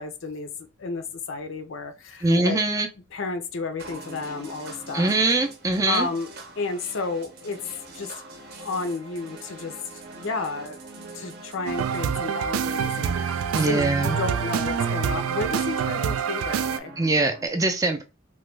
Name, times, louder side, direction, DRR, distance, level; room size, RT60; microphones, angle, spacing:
voice 1, 0.0-2.6 3.1-5.1 5.9-6.3 6.6-7.6 7.9-8.1 8.4-9.8 10.1-10.8 11.1-16.9, left 3 dB, 70° left, 0.5 m, -32 dB
voice 2, 2.2-2.9 4.9-6.1 13.5-14.2 17.0-18.0, right 2 dB, 15° right, 0.4 m, -22 dB
sound 1, 3.8-17.5, right 2 dB, 50° right, 0.7 m, -44 dB
sound 2, 11.7-16.8, right 7 dB, 90° right, 0.3 m, -26 dB
3.0 x 2.2 x 3.2 m
head